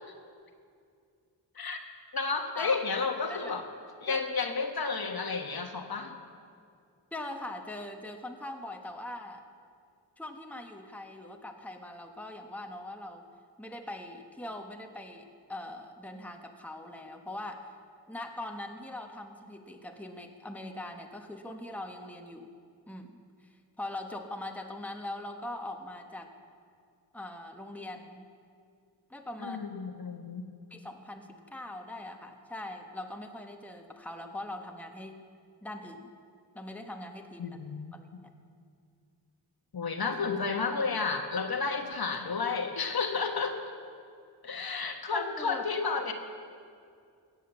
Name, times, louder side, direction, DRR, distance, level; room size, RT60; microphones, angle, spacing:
voice 1, 2.1-3.7 4.0-6.1 29.4-30.5 37.4-37.9 39.7-43.6 44.4-46.1, left 4 dB, 55° left, 5 dB, 1.4 m, -31 dB
voice 2, 7.1-9.4 10.2-13.3 13.6-17.7 18.1-22.5 22.9-23.2 23.8-26.3 27.1-28.3 29.1-29.6 30.7-35.2 35.6-36.1 36.5-37.6 37.9-38.1 45.1-46.0, left 1 dB, 5° left, 3 dB, 1.2 m, -41 dB
16.5 x 8.3 x 7.2 m, 2.3 s
cardioid pair, 65°, 44 cm